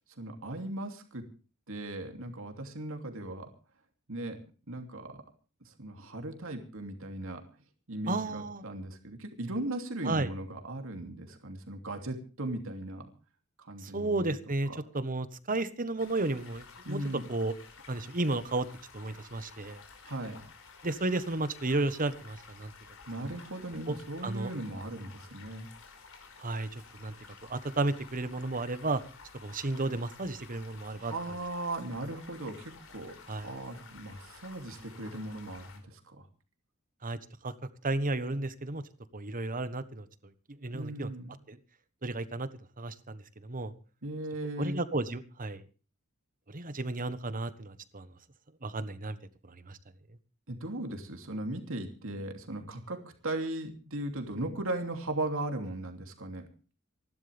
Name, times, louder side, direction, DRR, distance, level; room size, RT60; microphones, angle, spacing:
voice 1, 0.2-1.3 1.7-3.5 4.1-4.4 4.7-5.2 5.7-7.4 7.9-13.1 13.6-14.4 16.8-17.2 20.0-20.4 23.1-25.7 31.0-33.2 33.4-36.3 40.7-41.4 44.0-44.9 50.5-56.5, right 1 dB, 65° right, 5 dB, 2.9 m, -37 dB
voice 2, 8.1-8.6 10.0-10.3 13.8-17.0 17.3-17.5 17.9-18.7 18.9-19.8 20.8-22.7 23.2-23.3 23.9-24.0 24.2-24.5 26.4-27.1 27.5-29.0 29.4-31.1 33.3-33.5 37.0-37.2 37.4-37.5 37.8-38.8 39.1-40.1 40.6-41.1 41.5-41.6 42.0-42.5 42.8-43.7 44.6-45.6 46.5-48.1 48.6-49.2 49.5-49.8, right 2 dB, 40° right, 13 dB, 1.3 m, -33 dB
sound 1, 16.0-35.8, left 5 dB, 65° left, 5.0 m, -53 dB
27.5 x 12.0 x 3.5 m, 0.35 s
head